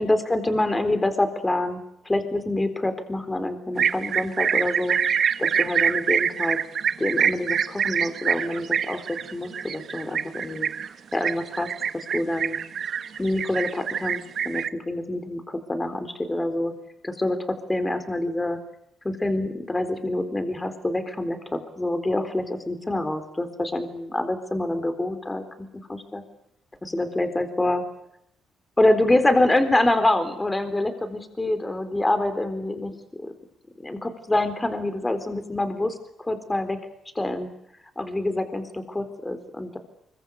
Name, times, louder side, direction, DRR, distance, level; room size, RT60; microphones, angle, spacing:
voice 1, 0.0-5.0 5.4-6.6 7.0-10.7 11.1-12.6 13.2-16.7 17.0-18.6 19.0-26.2 26.8-27.8 28.8-33.3 33.8-36.8 37.2-37.5 38.0-39.8, left 1 dB, 15° left, 9 dB, 4.0 m, -26 dB
sound 1, 3.8-14.7, right 7 dB, 55° right, 1.2 m, -25 dB
24.5 x 23.5 x 8.3 m, 0.77 s
cardioid pair, 90°, 0 cm